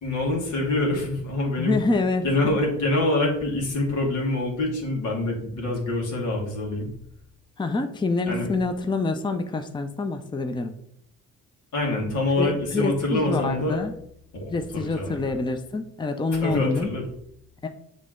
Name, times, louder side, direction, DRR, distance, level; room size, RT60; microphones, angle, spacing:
voice 1, 0.0-1.8 2.2-6.9 8.3-8.5 11.7-13.8 14.3-15.3 16.3-17.0, left 2 dB, 80° left, -2 dB, 2.4 m, -25 dB
voice 2, 1.6-2.3 7.6-10.7 12.4-13.9 14.5-16.9 17.6-17.7, left 3 dB, 15° left, 6 dB, 0.6 m, -26 dB
7.6 x 3.7 x 3.8 m, 0.71 s
cardioid pair, 90°, 30 cm